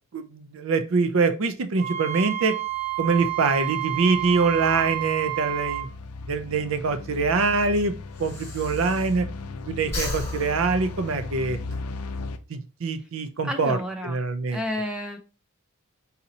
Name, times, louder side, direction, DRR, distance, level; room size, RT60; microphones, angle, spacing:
voice 1, 0.1-2.6 3.0-5.9 6.3-7.9 8.2-9.3 9.7-11.6 12.5-13.8 14.0-14.6, right 4 dB, 60° right, 10 dB, 0.5 m, -24 dB
Wind instrument woodwind instrument, 1.8-5.9, right 16 dB, 40° right, 0.8 m, -29 dB
sound 1, 2.7-12.4, left 3 dB, 80° left, 0.5 m, -37 dB
Breathing, 6.7-9.5 9.8-11.8, left 1 dB, 10° left, 1.4 m, -36 dB
voice 2, 13.4-14.2 14.5-15.2, left 1 dB, 5° right, 3 dB, 0.5 m, -31 dB
4.1 x 2.7 x 4.0 m, 0.33 s
head